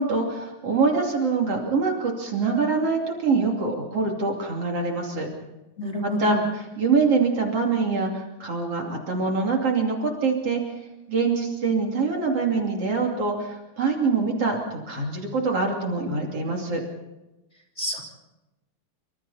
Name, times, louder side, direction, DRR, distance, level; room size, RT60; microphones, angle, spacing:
voice 1, 0.0-5.3 6.0-10.6 11.1-16.8, right 4 dB, 50° right, 1 dB, 3.7 m, -24 dB
voice 2, 5.8-6.4 17.8-18.0, left 1 dB, 20° left, 1 dB, 3.6 m, -27 dB
28.0 x 25.5 x 4.3 m, 1.0 s
omnidirectional pair, 3.7 m